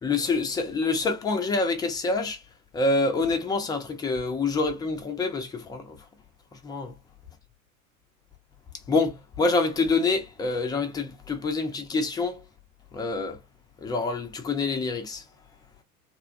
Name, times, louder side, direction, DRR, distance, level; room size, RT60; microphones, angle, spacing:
voice 1, 0.0-2.4 2.7-6.0 6.5-6.9 8.9-12.4 12.9-13.4 13.8-15.2, left 3 dB, 10° left, 0.4 m, -26 dB
2.9 x 2.2 x 2.5 m
figure-of-eight pair, 85°, 42 cm